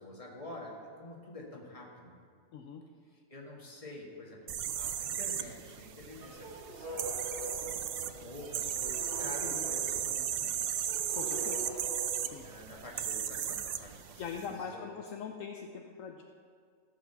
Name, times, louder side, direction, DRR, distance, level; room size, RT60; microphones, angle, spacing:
voice 1, 0.0-2.2 3.1-7.2 7.6-7.8 8.1-10.6 11.3-11.5 12.4-14.9, left 1 dB, 25° left, -2 dB, 1.7 m, -48 dB
sound 1, 4.5-14.5, right 9 dB, 85° right, 0.5 m, -36 dB
sound 2, 6.1-13.0, right 1 dB, 70° right, 3.4 m, -44 dB
voice 2, 11.1-11.6 12.3-12.4 14.2-16.2, left 6 dB, 65° left, 3 dB, 1.0 m, -42 dB
15.0 x 5.0 x 6.9 m, 2.1 s
omnidirectional pair, 1.6 m